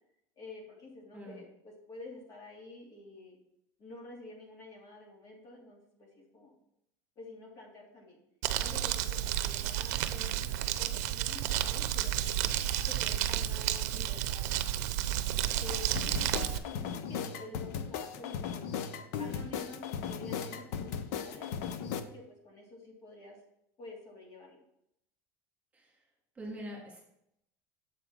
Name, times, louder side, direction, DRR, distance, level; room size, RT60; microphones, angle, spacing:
voice 1, 0.4-3.4 3.8-6.6 7.2-8.2 8.6-12.5 12.8-14.9 15.6-16.5 16.7-18.6 19.2-23.4 23.8-24.6, left 2 dB, 45° left, -2 dB, 2.8 m, -49 dB
Crumpling crinkling, 8.4-16.6, right 12 dB, 85° right, 0.6 m, -31 dB
sound 1, 16.0-22.0, left 7 dB, 80° left, 0.7 m, -37 dB
voice 2, 26.3-27.0, equal, 15° right, -2 dB, 2.9 m, -44 dB
7.6 x 5.0 x 6.0 m, 0.77 s
supercardioid pair, 125°, 9 cm